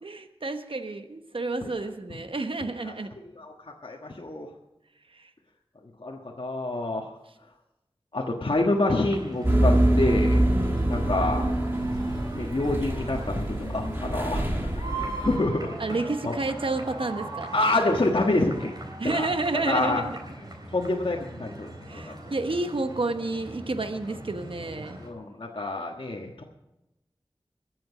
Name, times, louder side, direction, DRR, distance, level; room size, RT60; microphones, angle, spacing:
voice 1, 0.0-3.1 5.1-5.3 10.5-11.0 15.8-17.6 19.0-20.2 21.9-25.0, right 2 dB, 70° right, 7 dB, 1.0 m, -30 dB
voice 2, 3.8-4.5 6.0-7.0 8.1-10.4 10.9-11.5 12.3-14.4 14.9-15.7 16.2-16.3 17.5-18.7 19.1-19.3 19.7-20.0 20.7-22.1 25.0-26.4, left 2 dB, 65° left, -1 dB, 1.4 m, -27 dB
sound 1, 9.0-25.1, right 2 dB, 45° right, 3.8 m, -40 dB
sound 2, 9.4-15.4, right 1 dB, 25° right, 2.7 m, -25 dB
22.0 x 7.8 x 5.0 m, 0.94 s
wide cardioid pair, 50°, 9 cm